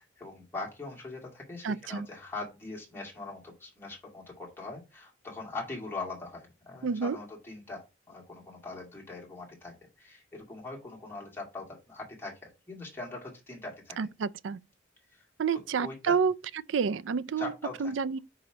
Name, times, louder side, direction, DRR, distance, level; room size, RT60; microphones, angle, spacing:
voice 1, 0.0-12.4 12.7-14.0 15.1-15.2 15.5-16.2 17.4-17.9, left 3 dB, 10° left, 2.3 m, -41 dB
voice 2, 1.6-2.1 6.8-7.2 14.0-14.6 15.4-16.3 16.7-17.5 17.8-18.2, right 6 dB, 75° right, 0.4 m, -29 dB
4.8 x 4.0 x 5.8 m
head